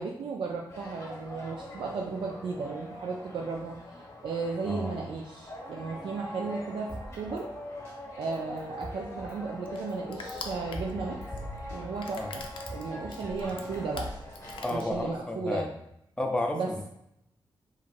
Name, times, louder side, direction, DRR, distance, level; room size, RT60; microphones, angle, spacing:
voice 1, 0.0-3.8 4.2-7.5 8.2-11.2 11.7-12.4 12.7-14.1 14.7-15.7 16.5-16.9, right 4 dB, 80° right, -1 dB, 0.4 m, -35 dB
sound 1, 0.7-14.8, left 1 dB, 35° left, 0.9 m, -42 dB
voice 2, 4.6-5.0 12.2-12.3 14.6-15.7 16.2-16.6, left 2 dB, 10° left, 2 dB, 0.4 m, -31 dB
Drum kit, 6.9-7.5 7.8-7.9 8.2-9.4 9.8-9.9 10.2-11.3 11.7-11.8 12.0-13.2 13.6-14.5, right 1 dB, 35° right, 1.0 m, -45 dB
Crushing, 8.6-15.4, left 4 dB, 85° left, 0.4 m, -45 dB
2.9 x 2.5 x 2.5 m, 0.78 s
wide cardioid pair, 95°, 8 cm